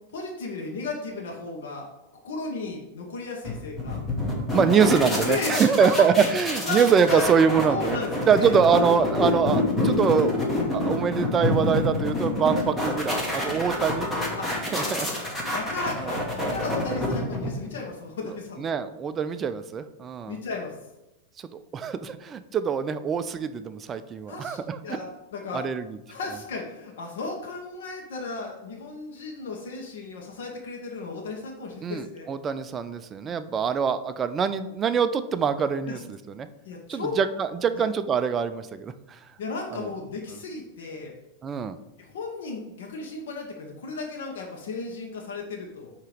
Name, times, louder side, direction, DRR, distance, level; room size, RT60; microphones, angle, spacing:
voice 1, 0.1-1.9 2.2-4.0 5.2-6.0 6.6-7.3 7.6-8.5 14.4-15.2 15.5-18.7 20.3-20.7 24.3-25.7 26.1-32.3 35.9-36.0 36.6-37.2 37.7-37.9 39.4-41.1 42.0-45.9, left 3 dB, 80° left, 0 dB, 1.1 m, -35 dB
sound 1, 3.4-17.8, left 1 dB, 10° left, 1.0 m, -27 dB
voice 2, 4.5-8.0 8.3-10.4 10.7-14.1 14.6-15.1 16.0-16.2 18.2-20.4 21.4-25.0 25.5-26.0 31.8-36.5 36.9-39.3 39.7-39.9 41.4-41.8, right 6 dB, 20° right, 10 dB, 0.3 m, -24 dB
7.7 x 2.9 x 5.0 m, 0.95 s
supercardioid pair, 155°, 0 cm